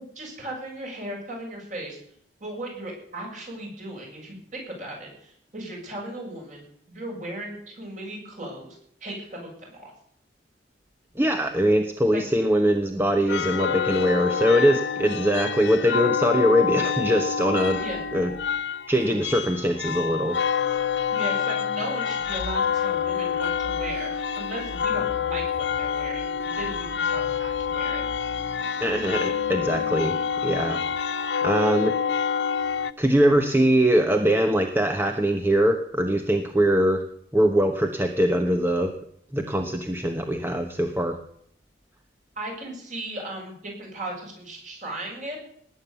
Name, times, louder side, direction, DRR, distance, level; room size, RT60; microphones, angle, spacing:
voice 1, 0.2-2.0 2.4-9.9 12.1-12.2 17.8-18.0 21.1-28.0 42.4-45.4, right 1 dB, 40° right, -1 dB, 7.3 m, -36 dB
voice 2, 11.2-17.8 18.1-18.3 18.9-20.4 28.8-30.2 30.4-30.8 31.4-31.9 33.0-37.0 37.3-38.9 39.3-41.2, equal, 10° right, 5 dB, 1.0 m, -22 dB
sound 1, 13.3-32.9, left 7 dB, 70° left, 0.7 m, -27 dB
19.0 x 9.4 x 6.9 m, 0.66 s
head